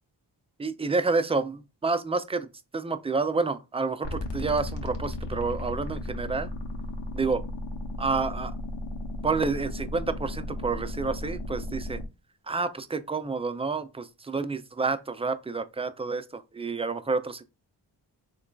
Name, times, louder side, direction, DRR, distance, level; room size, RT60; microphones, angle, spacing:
voice 1, 0.6-6.5 7.1-7.4 8.0-8.5 9.2-12.0 12.5-17.4, right 4 dB, 15° right, 0.3 m, -29 dB
sound 1, 4.0-12.0, left 1 dB, 65° left, 1.0 m, -35 dB
3.7 x 3.2 x 2.3 m
cardioid pair, 60°, 45 cm